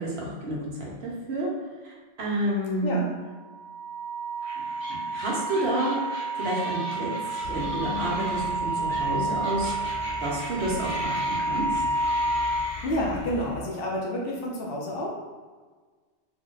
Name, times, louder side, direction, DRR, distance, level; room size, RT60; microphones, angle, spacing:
voice 1, 0.0-1.5 1.8-3.0 4.9-6.0 6.4-11.6, right 1 dB, 65° right, -3 dB, 0.9 m, -30 dB
Wind instrument woodwind instrument, 3.2-12.7, right 2 dB, 85° right, 1.1 m, -30 dB
sound 1, 4.4-13.5, left 1 dB, 40° left, 0.4 m, -41 dB
sound 2, 7.4-13.6, left 4 dB, 85° left, 0.9 m, -40 dB
voice 2, 12.8-15.1, left 1 dB, 60° left, -3 dB, 0.7 m, -29 dB
2.6 x 2.1 x 3.7 m, 1.4 s
omnidirectional pair, 1.2 m